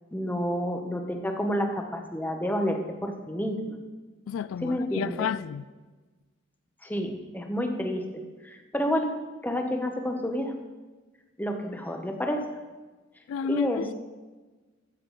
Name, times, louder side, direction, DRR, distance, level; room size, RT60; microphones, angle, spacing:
voice 1, 0.1-3.8 4.6-5.3 6.8-8.0 8.4-9.2 9.4-10.5 11.4-12.5 13.5-13.8, equal, 10° left, 1.0 m, -29 dB
voice 2, 4.3-5.6 13.3-13.9, left 7 dB, 85° left, 0.3 m, -31 dB
12.5 x 7.6 x 4.0 m
head